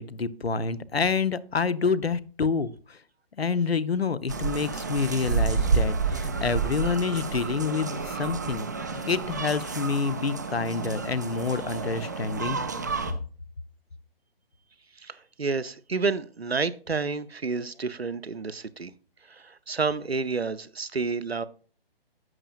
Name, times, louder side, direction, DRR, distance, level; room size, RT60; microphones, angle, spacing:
voice 1, 0.0-3.0 3.4-12.6, left 5 dB, 85° left, 0.6 m, -28 dB
sound 1, 4.3-13.1, right 5 dB, 20° right, 0.4 m, -30 dB
voice 2, 15.0-18.9 19.3-21.4, right 4 dB, 85° right, 0.7 m, -30 dB
11.0 x 7.5 x 2.5 m
figure-of-eight pair, 130°, 30 cm